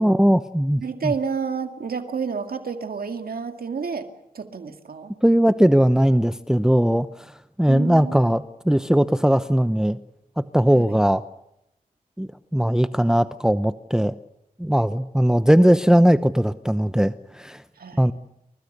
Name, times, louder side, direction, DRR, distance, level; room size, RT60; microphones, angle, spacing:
voice 1, 0.0-1.1 5.2-7.3 7.6-10.0 10.4-11.2 12.2-14.1 14.6-17.6 18.0-18.1, equal, 5° right, 12 dB, 0.9 m, -19 dB
voice 2, 0.8-4.1 4.3-5.1 7.7-8.2 10.7-11.0 17.8-18.1, right 5 dB, 85° right, 7 dB, 2.2 m, -30 dB
29.0 x 24.0 x 6.8 m, 0.82 s
cardioid pair, 45°, 15 cm